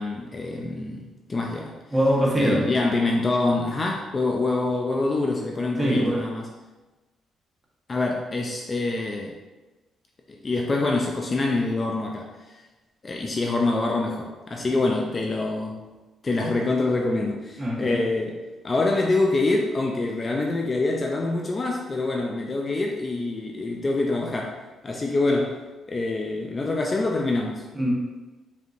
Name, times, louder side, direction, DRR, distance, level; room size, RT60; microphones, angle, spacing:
voice 1, 0.0-1.8 2.4-6.5 7.9-9.4 10.3-12.6 13.0-15.9 16.2-24.6 24.8-25.6 25.9-27.7, left 2 dB, 30° left, 1 dB, 0.4 m, -25 dB
voice 2, 1.9-2.6 5.8-6.2 14.7-14.8 17.6-18.0 27.7-27.9, equal, 15° right, -4 dB, 1.2 m, -22 dB
5.2 x 2.8 x 2.6 m, 1.2 s
cardioid pair, 90°, 0 cm